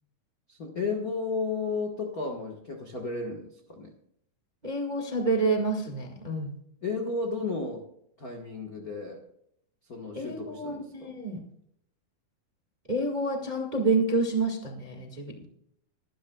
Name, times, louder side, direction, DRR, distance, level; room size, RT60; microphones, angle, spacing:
voice 1, 0.5-3.9 6.8-7.9 8.2-9.2 9.9-11.1, left 4 dB, 70° left, 1 dB, 0.8 m, -33 dB
voice 2, 4.6-6.5 10.1-11.4 12.9-15.4, right 3 dB, 25° right, 1 dB, 0.9 m, -28 dB
25.0 x 11.5 x 2.3 m, 0.72 s
omnidirectional pair, 4.1 m